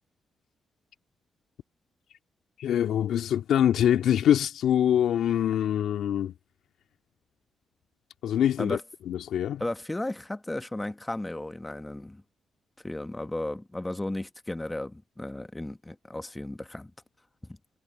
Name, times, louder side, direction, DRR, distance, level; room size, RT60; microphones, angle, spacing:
voice 1, 2.6-6.3 8.2-8.8 9.1-9.7, left 10 dB, 80° left, 2.4 m, -24 dB
voice 2, 9.6-12.2 12.8-16.9, left 1 dB, 15° left, 1.4 m, -34 dB
supercardioid pair, 60°, 0 cm